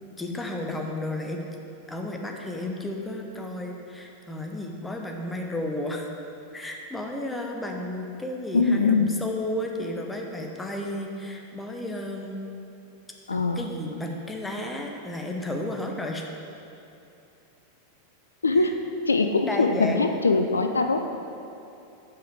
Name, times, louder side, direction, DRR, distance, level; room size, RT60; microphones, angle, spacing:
voice 1, 0.2-1.4 1.9-6.1 6.5-12.4 13.5-16.2 18.5-18.7 19.4-20.1, left 1 dB, 10° left, 1 dB, 0.8 m, -33 dB
voice 2, 8.5-9.1 13.3-13.7 18.4-18.8 19.1-21.2, left 3 dB, 75° left, 7 dB, 0.3 m, -22 dB
7.6 x 5.1 x 4.8 m, 2.7 s
figure-of-eight pair, 90°, 0 cm